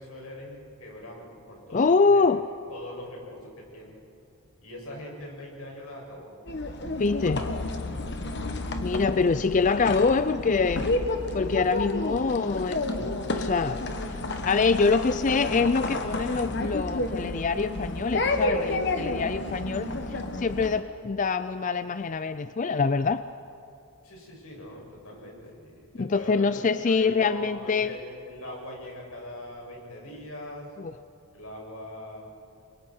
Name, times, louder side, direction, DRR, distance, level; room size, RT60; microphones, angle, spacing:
voice 1, 0.0-2.2 2.7-3.9 4.6-6.3 7.1-7.4 7.8-8.0 24.0-30.7 31.3-32.2, left 1 dB, 90° left, -1 dB, 6.7 m, -42 dB
voice 2, 1.7-2.4 7.0-7.5 8.8-10.9 11.3-13.1 13.4-13.8 14.4-23.2 26.0-27.9 30.8-30.9, left 4 dB, 35° left, 12 dB, 0.4 m, -25 dB
sound 1, 6.5-20.8, left 2 dB, 55° left, 1.5 m, -31 dB
30.0 x 23.5 x 4.5 m, 2.6 s
head